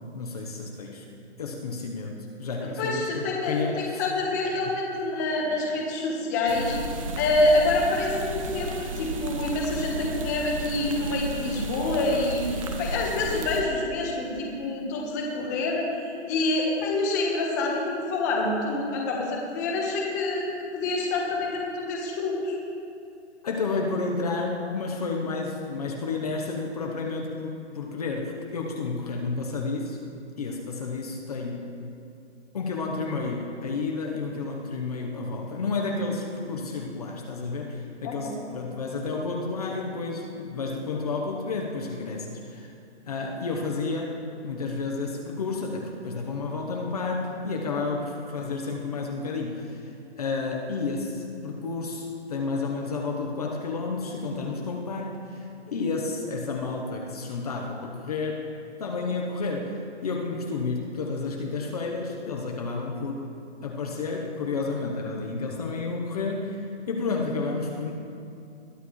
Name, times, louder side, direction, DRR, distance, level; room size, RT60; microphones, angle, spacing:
voice 1, 0.1-1.0 1.4-4.0 23.4-30.0 30.4-31.7 32.5-42.7 43.1-49.9 50.2-58.5 58.8-63.3 63.6-67.9, left 3 dB, 35° left, 0 dB, 1.0 m, -31 dB
voice 2, 2.8-6.8 7.2-20.5 20.7-22.6 38.0-38.4, left 2 dB, 15° left, -1 dB, 1.3 m, -27 dB
sound 1, 6.5-13.6, right 1 dB, 30° right, 1.1 m, -33 dB
21.0 x 12.5 x 3.2 m, 2.6 s
hypercardioid pair, 175°, 35 cm